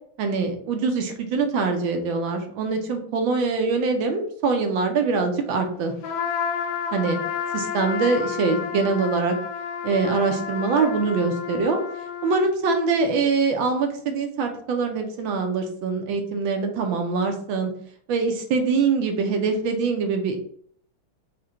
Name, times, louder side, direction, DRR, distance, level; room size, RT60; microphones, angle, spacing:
voice 1, 0.2-5.9 6.9-7.2 7.5-9.4 9.8-11.8 12.2-17.7 18.1-20.4, right 4 dB, 70° right, 4 dB, 1.3 m, -23 dB
Trumpet, 6.0-12.5, left 7 dB, 85° left, 1.6 m, -30 dB
4.9 x 2.1 x 4.3 m, 0.62 s
omnidirectional pair, 2.4 m